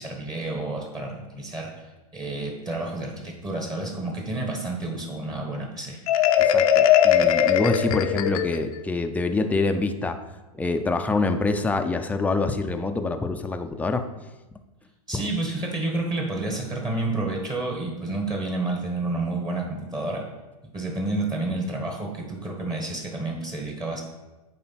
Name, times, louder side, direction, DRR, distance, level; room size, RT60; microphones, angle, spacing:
voice 1, 0.0-1.7 2.1-6.0 15.1-20.2 20.7-24.0, right 2 dB, 20° right, 1 dB, 1.5 m, -30 dB
Marimba xylophone, 6.1-8.8, left 9 dB, 70° left, 0.6 m, -20 dB
voice 2, 6.4-10.2 10.5-14.0 15.1-15.2, left 3 dB, 10° left, 6 dB, 0.5 m, -26 dB
8.6 x 3.4 x 5.8 m, 1.1 s
hypercardioid pair, 110°, 19 cm